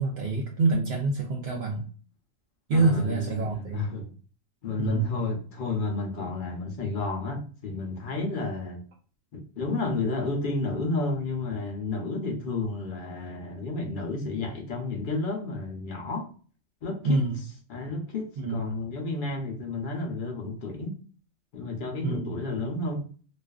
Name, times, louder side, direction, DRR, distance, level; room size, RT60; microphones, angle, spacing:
voice 1, 0.0-1.8 2.7-3.9 4.8-5.1 17.0-17.4 18.4-18.7 22.0-22.3, right 3 dB, 65° right, 0.6 m, -26 dB
voice 2, 2.7-4.1 4.6-8.8 9.3-16.3 16.8-17.3 17.7-21.0 21.5-23.1, left 3 dB, 55° left, 0.6 m, -31 dB
2.4 x 2.4 x 2.2 m
omnidirectional pair, 1.4 m